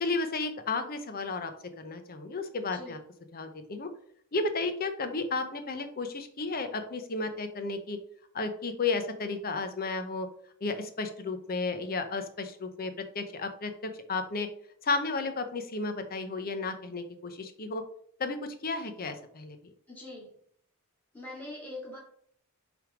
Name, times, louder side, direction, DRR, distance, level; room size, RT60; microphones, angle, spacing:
voice 1, 0.0-3.0 3.3-3.9 4.3-8.0 8.3-10.3 10.6-13.7 14.1-14.5 14.8-17.8 18.2-19.7, left 3 dB, 45° left, 8 dB, 0.7 m, -33 dB
voice 2, 19.9-20.3 21.1-22.0, left 1 dB, 10° left, -3 dB, 2.4 m, -42 dB
6.1 x 3.5 x 5.0 m, 0.63 s
head